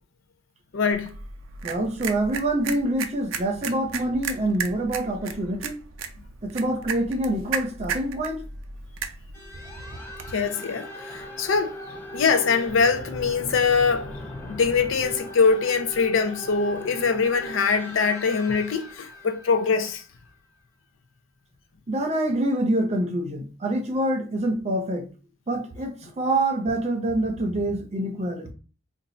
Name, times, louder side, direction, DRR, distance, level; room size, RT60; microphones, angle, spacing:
voice 1, 0.7-1.2 10.3-11.8 12.1-14.1 14.4-20.0, left 5 dB, 80° left, 0.5 m, -23 dB
sound 1, 0.9-10.4, right 6 dB, 85° right, 0.5 m, -35 dB
voice 2, 1.6-5.8 6.4-8.4 21.9-25.1 25.5-28.5, right 1 dB, 35° right, 0.6 m, -26 dB
sound 2, 9.3-20.6, left 1 dB, 10° left, 0.7 m, -39 dB
2.6 x 2.3 x 4.1 m
head